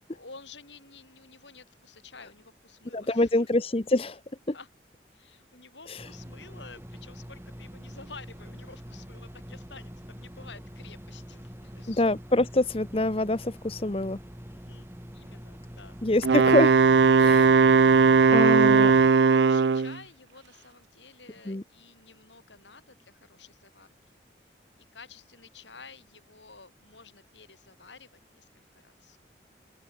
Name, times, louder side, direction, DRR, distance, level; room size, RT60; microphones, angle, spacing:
voice 1, 0.1-3.5 4.5-4.7 5.1-12.0 14.5-16.0 17.2-17.6 18.4-24.2 24.4-24.5 24.9-29.2, left 4 dB, 85° left, 7.9 m, -51 dB
voice 2, 2.9-4.2 5.9-6.1 11.9-14.2 16.0-16.8 17.2-17.6 18.3-18.9 21.5-21.6, left 2 dB, 30° left, 0.9 m, -25 dB
sound 1, 6.0-19.1, equal, 15° right, 3.5 m, -44 dB
Wind instrument woodwind instrument, 16.2-20.0, right 5 dB, 75° right, 0.5 m, -18 dB
open air
head